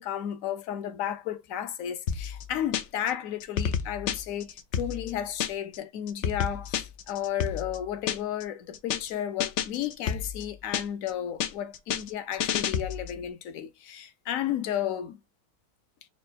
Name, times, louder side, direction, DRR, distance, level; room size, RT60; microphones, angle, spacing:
voice 1, 0.0-15.2, left 10 dB, 60° left, 0.9 m, -33 dB
sound 1, 2.1-3.1 3.4-5.8 6.1-8.4 8.7-9.1 9.4-11.1 11.4-13.2, left 8 dB, 90° left, 0.6 m, -31 dB
4.2 x 2.2 x 4.4 m
omnidirectional pair, 1.9 m